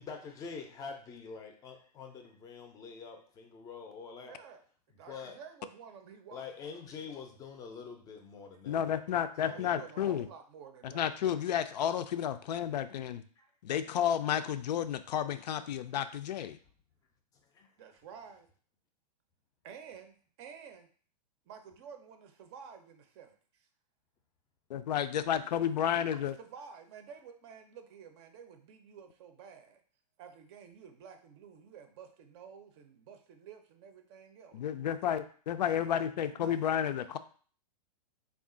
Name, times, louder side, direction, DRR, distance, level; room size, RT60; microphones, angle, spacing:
voice 1, 0.0-4.4 5.1-5.4 6.3-9.0 9.4-9.8 17.5-17.7, left 5 dB, 15° left, 4 dB, 0.5 m, -46 dB
voice 2, 4.2-4.6 4.9-6.4 9.4-11.4 13.4-13.5 17.8-18.5 19.6-20.9 21.5-23.7 25.4-25.6 26.0-29.8 30.2-34.6 35.6-37.1, right 7 dB, 40° right, 6 dB, 0.5 m, -51 dB
voice 3, 8.7-10.3 10.8-13.2 13.6-16.6 24.7-26.3 34.5-37.2, left 9 dB, 75° left, 11 dB, 0.4 m, -31 dB
3.5 x 2.4 x 3.7 m, 0.44 s
hypercardioid pair, 145°, 21 cm